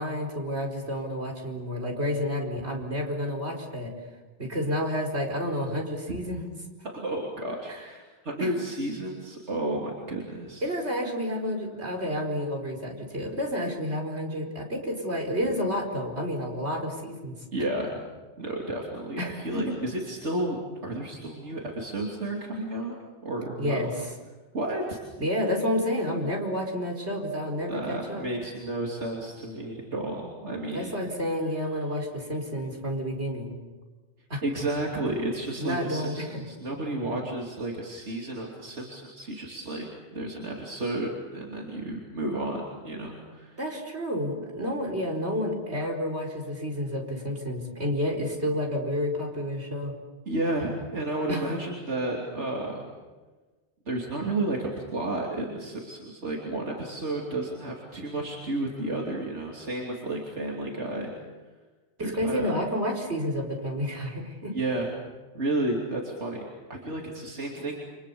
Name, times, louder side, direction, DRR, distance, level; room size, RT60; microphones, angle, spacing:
voice 1, 0.0-3.9 4.4-6.5 7.7-7.9 8.4-8.5 10.6-17.4 19.2-19.7 23.6-24.1 25.2-28.2 30.7-33.5 34.3-34.4 35.6-36.4 37.1-37.2 43.6-49.9 51.3-51.5 62.0-64.5, equal, 70° right, 1 dB, 5.0 m, -30 dB
voice 2, 6.9-10.6 17.5-18.0 18.4-22.9 23.2-23.9 24.5-25.0 27.7-31.1 34.4-43.6 50.3-52.9 53.8-61.1 62.0-62.5 64.5-64.9 65.3-67.7, right 2 dB, 90° right, -2 dB, 3.3 m, -32 dB
30.0 x 25.5 x 7.0 m, 1.3 s
omnidirectional pair, 1.1 m